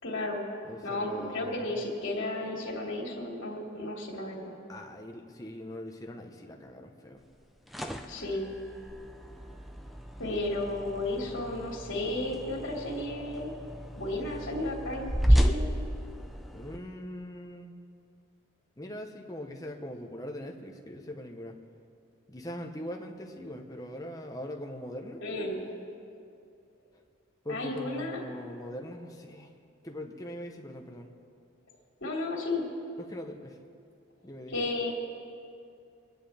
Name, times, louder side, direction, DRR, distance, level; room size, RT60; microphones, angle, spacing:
voice 1, 0.0-0.5 0.8-4.5 8.1-8.5 10.2-13.5 14.0-15.7 25.2-25.7 27.5-28.2 32.0-32.7 34.5-34.9, left 2 dB, 75° left, -2 dB, 2.7 m, -33 dB
voice 2, 0.6-1.7 4.7-7.2 16.5-17.7 18.8-21.6 22.3-25.2 27.4-29.5 29.8-31.1 33.0-33.6 34.2-34.6, left 1 dB, 15° left, 2 dB, 0.9 m, -41 dB
sound 1, 7.4-16.8, equal, ahead, 0.5 m, -31 dB
25.0 x 10.5 x 3.5 m, 2.5 s
head